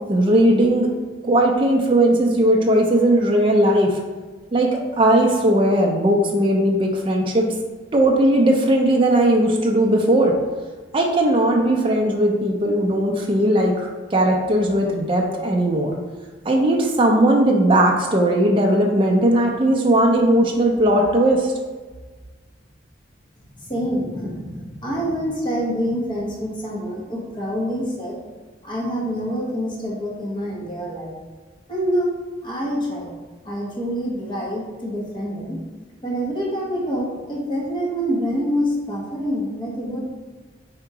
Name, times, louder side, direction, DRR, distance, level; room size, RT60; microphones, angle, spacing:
voice 1, 0.1-0.9 1.2-4.0 4.5-7.5 7.9-10.3 10.9-15.9 16.4-21.5, right 1 dB, 25° right, 0 dB, 0.4 m, -18 dB
voice 2, 23.5-28.2 28.6-31.1 31.7-32.1 32.4-33.1 33.4-35.6 36.0-40.0, equal, 25° left, -4 dB, 1.0 m, -26 dB
3.5 x 2.9 x 4.7 m, 1.3 s
head